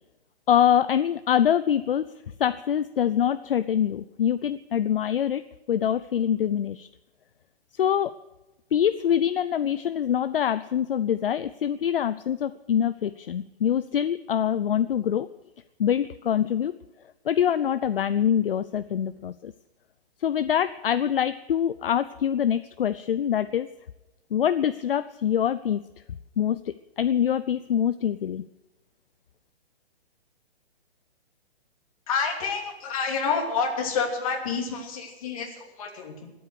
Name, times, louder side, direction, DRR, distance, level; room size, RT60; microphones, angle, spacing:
voice 1, 0.5-2.1 2.4-5.4 5.7-6.9 7.7-8.1 8.7-15.3 15.8-16.7 17.2-19.5 20.2-23.7 24.3-25.8 26.4-26.6 27.0-28.5, left 9 dB, 60° left, 13 dB, 0.6 m, -24 dB
voice 2, 32.1-36.3, left 5 dB, 35° left, 1 dB, 3.0 m, -28 dB
21.5 x 8.7 x 6.6 m, 1.0 s
hypercardioid pair, 170°, 32 cm